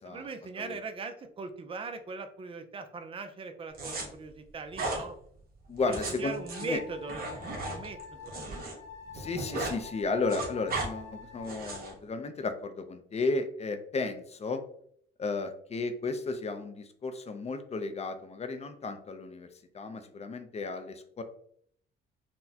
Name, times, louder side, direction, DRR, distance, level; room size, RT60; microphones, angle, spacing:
voice 1, 0.1-5.2 5.9-7.2 7.6-8.5, right 4 dB, 25° right, 7 dB, 0.4 m, -40 dB
sound 1, 3.7-4.0 4.7-5.0 5.8-8.7 9.0-9.8 10.1-10.9 11.4-11.9, right 2 dB, 50° right, 1.1 m, -36 dB
voice 2, 5.7-6.8 9.1-14.6 15.2-19.5 19.7-21.2, left 3 dB, 35° left, 8 dB, 0.5 m, -34 dB
sound 2, 6.2-11.8, left 6 dB, 70° left, 1.0 m, -47 dB
4.1 x 2.1 x 2.7 m, 0.64 s
cardioid pair, 90°, 20 cm